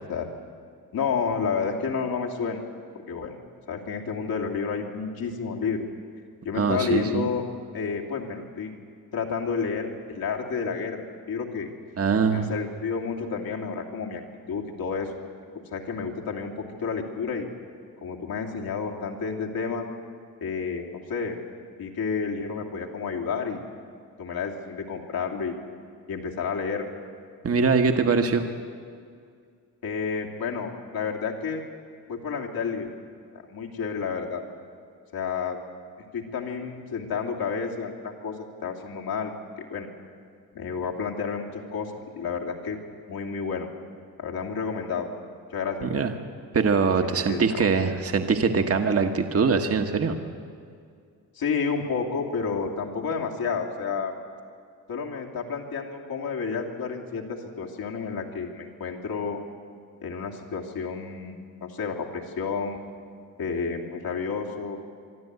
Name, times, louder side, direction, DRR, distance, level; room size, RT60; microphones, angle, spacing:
voice 1, 0.9-2.6 3.1-3.4 3.7-5.9 6.4-7.4 7.7-8.7 9.1-11.7 12.3-14.2 14.5-15.2 15.7-17.5 18.0-19.8 20.4-21.4 21.8-23.6 24.2-25.6 26.1-26.9 29.8-31.6 32.1-32.9 33.3-34.4 35.1-35.6 36.1-38.3 38.6-39.3 39.6-39.9 40.5-42.8 43.1-43.7 44.2-45.1 45.5-46.0 47.1-47.7 51.3-54.1 54.9-59.4 60.0-62.8 63.4-64.8, left 5 dB, 70° left, 0 dB, 2.8 m, -30 dB
voice 2, 6.5-7.3 12.0-12.5 27.4-28.4 45.8-46.1 46.5-50.2, right 5 dB, 40° right, 5 dB, 1.4 m, -23 dB
24.0 x 12.5 x 9.5 m, 2.2 s
cardioid pair, 80°, 37 cm